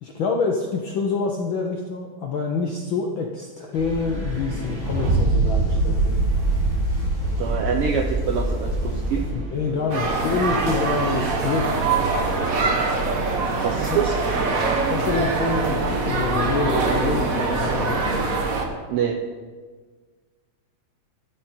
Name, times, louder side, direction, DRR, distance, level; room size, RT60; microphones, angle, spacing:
voice 1, 0.0-6.2 9.3-11.7 13.9-14.0 14.9-18.1, left 4 dB, 70° left, 1 dB, 1.1 m, -26 dB
sound 1, 3.7-18.1, right 3 dB, 45° right, 2.5 m, -28 dB
sound 2, 3.8-9.3, equal, 10° right, 4.6 m, -29 dB
voice 2, 7.4-9.3 13.6-14.2 18.9-19.2, right 7 dB, 80° right, 4 dB, 1.3 m, -25 dB
sound 3, 9.9-18.6, right 3 dB, 65° right, 0.8 m, -23 dB
12.5 x 11.5 x 4.4 m, 1.5 s
omnidirectional pair, 3.4 m